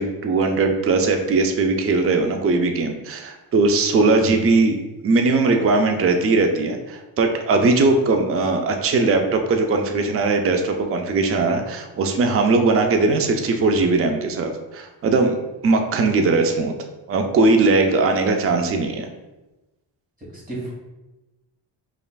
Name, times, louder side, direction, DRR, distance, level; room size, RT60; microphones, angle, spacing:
voice 1, 0.0-4.8 5.0-15.4 15.6-16.7 17.1-19.1, right 3 dB, 35° right, 5 dB, 0.4 m, -19 dB
voice 2, 4.1-4.4 20.2-20.7, right 1 dB, 20° right, -4 dB, 1.3 m, -33 dB
5.3 x 2.4 x 2.3 m, 1.0 s
wide cardioid pair, 115°, 45 cm